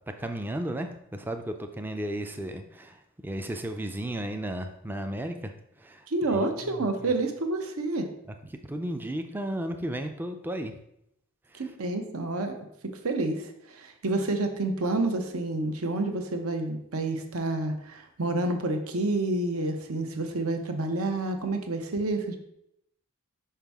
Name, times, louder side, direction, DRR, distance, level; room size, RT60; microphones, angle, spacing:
voice 1, 0.2-5.5 5.8-6.9 8.4-10.7 11.5-11.7, right 1 dB, 10° right, 6 dB, 0.3 m, -34 dB
voice 2, 6.1-8.1 11.6-12.6 12.8-22.4, right 2 dB, 75° right, 6 dB, 0.8 m, -29 dB
5.7 x 5.3 x 3.5 m, 0.79 s
head